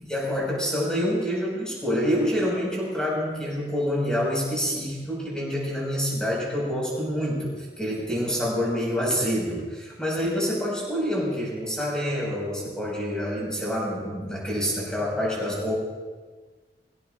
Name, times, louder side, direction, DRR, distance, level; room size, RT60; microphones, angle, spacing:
voice 1, 0.0-15.7, equal, 5° left, -4 dB, 5.5 m, -27 dB
23.5 x 16.5 x 2.6 m, 1.4 s
head